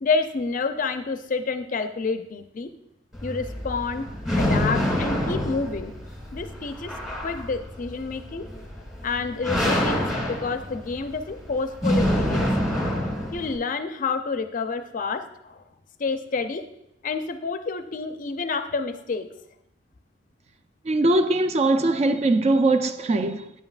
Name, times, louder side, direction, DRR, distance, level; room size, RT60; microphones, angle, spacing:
voice 1, 0.0-2.7 3.2-4.1 4.4-6.0 6.3-6.9 7.2-8.4 9.0-12.5 13.3-15.6 16.0-16.7 17.0-19.3, left 4 dB, 45° left, 0.4 m, -29 dB
sound 1, 3.1-13.6, left 1 dB, ahead, 1.6 m, -27 dB
voice 2, 20.9-23.5, right 2 dB, 35° right, 0.3 m, -21 dB
9.3 x 5.5 x 2.4 m
head